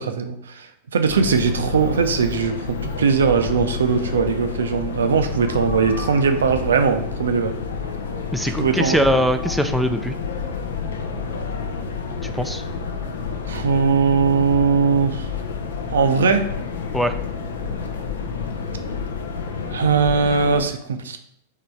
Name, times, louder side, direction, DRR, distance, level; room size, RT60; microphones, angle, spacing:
voice 1, 0.0-7.6 8.6-9.0 13.5-15.3 15.9-16.5 19.7-21.2, right 5 dB, 65° right, 7 dB, 0.5 m, -20 dB
sound 1, 1.1-20.6, left 5 dB, 65° left, 0.5 m, -29 dB
voice 2, 8.3-10.2 12.2-12.6 16.9-17.1, equal, ahead, 8 dB, 0.3 m, -21 dB
3.7 x 3.2 x 4.5 m, 0.71 s
figure-of-eight pair, 90°, 0 cm